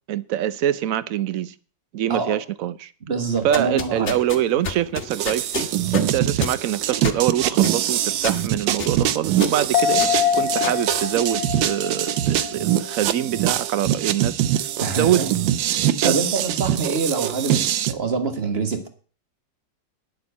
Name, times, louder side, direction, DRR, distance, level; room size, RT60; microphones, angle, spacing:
voice 1, 0.1-1.5 1.9-2.9 3.4-5.7 6.0-14.4 14.9-15.3 16.0-16.2, right 11 dB, 65° right, 0.9 m, -24 dB
voice 2, 3.1-4.2 14.8-15.3 16.0-18.9, right 4 dB, 35° right, 1.6 m, -25 dB
sound 1, 3.3-11.7, left 5 dB, 40° left, 1.5 m, -33 dB
sound 2, 5.1-17.9, right 11 dB, 85° right, 1.5 m, -23 dB
sound 3, 9.7-13.4 13.8-13.9, left 9 dB, 80° left, 1.5 m, -25 dB
9.6 x 7.2 x 8.3 m
omnidirectional pair, 2.0 m